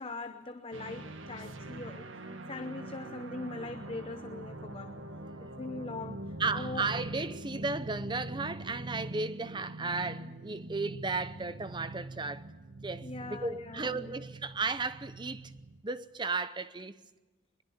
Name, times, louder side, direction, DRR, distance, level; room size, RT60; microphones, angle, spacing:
voice 1, 0.0-2.2 2.5-4.9 5.4-6.9 13.0-14.2, left 2 dB, 30° left, 0.8 m, -41 dB
sound 1, 0.7-15.8, right 2 dB, 85° right, 1.7 m, -43 dB
voice 2, 6.4-12.4 12.8-15.5 15.8-17.0, right 3 dB, 25° right, 0.7 m, -34 dB
22.5 x 21.5 x 8.6 m
head